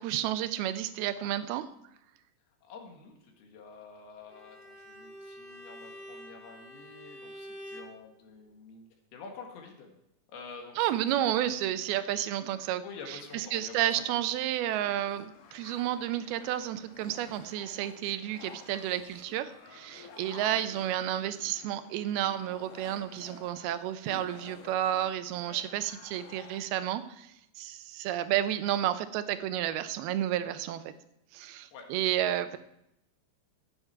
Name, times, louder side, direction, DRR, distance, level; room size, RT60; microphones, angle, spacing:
voice 1, 0.0-1.7 10.8-12.8 13.1-30.9 31.3-32.6, right 12 dB, 90° right, 11 dB, 2.6 m, -31 dB
voice 2, 2.6-9.9 10.3-11.7 12.8-14.2 20.5-20.7 31.7-31.9, left 4 dB, 90° left, 2 dB, 3.8 m, -48 dB
Bowed string instrument, 4.3-8.0, equal, 20° left, 1.7 m, -47 dB
sound 1, 14.7-26.7, left 6 dB, 65° left, 2.5 m, -52 dB
14.5 x 9.3 x 4.6 m, 0.82 s
omnidirectional pair, 4.3 m